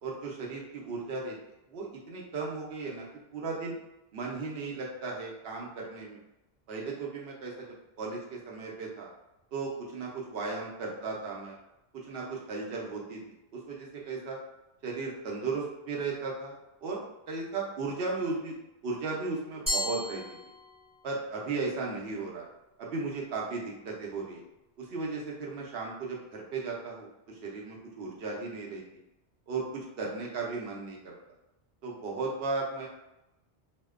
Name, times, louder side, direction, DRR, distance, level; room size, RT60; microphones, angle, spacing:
voice 1, 0.0-1.4 1.7-3.1 3.3-3.8 4.1-6.2 6.7-9.1 9.5-11.6 11.9-13.2 13.5-14.4 14.8-18.5 18.8-20.2 21.0-22.4 22.8-24.4 24.8-28.8 29.5-29.6 30.0-31.2 31.8-32.9, right 4 dB, 65° right, -3 dB, 0.8 m, -36 dB
Glass, 19.7-21.1, left 1 dB, 5° right, 0.7 m, -34 dB
2.6 x 2.1 x 2.3 m, 0.92 s
omnidirectional pair, 1.1 m